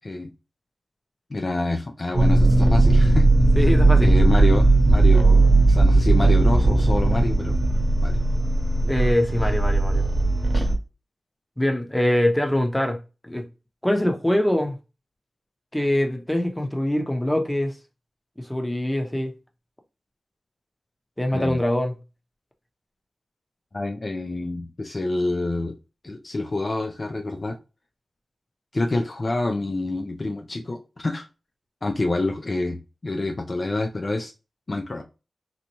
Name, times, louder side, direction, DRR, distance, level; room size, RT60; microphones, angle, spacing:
voice 1, 1.3-3.3 4.0-7.5 8.0-8.2 10.5-10.7 21.3-21.6 23.7-25.7 26.0-27.6 28.7-31.3 31.8-32.8 33.0-34.3 34.7-35.0, left 2 dB, 45° left, 0.5 m, -27 dB
sound 1, 2.1-10.7, right 2 dB, 55° right, 0.9 m, -17 dB
voice 2, 3.6-4.1 8.9-10.1 11.6-13.0 13.2-13.4 13.8-14.7 15.7-17.7 18.4-19.3 21.2-21.9, left 1 dB, 10° left, 0.8 m, -23 dB
4.1 x 2.1 x 2.9 m
cardioid pair, 50°, 0 cm